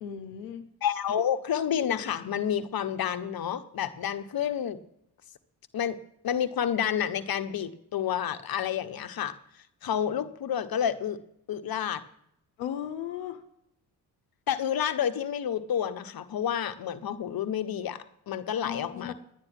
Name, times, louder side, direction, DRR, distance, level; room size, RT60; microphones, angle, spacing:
voice 1, 0.0-0.6 12.6-13.4 18.6-19.1, left 9 dB, 80° left, 8 dB, 0.9 m, -36 dB
voice 2, 0.8-4.8 5.7-6.0 6.2-9.3 9.8-11.2 11.5-12.0 14.5-19.1, left 9 dB, 50° left, 10 dB, 1.1 m, -29 dB
11.5 x 9.7 x 5.9 m, 0.75 s
hypercardioid pair, 50°, 46 cm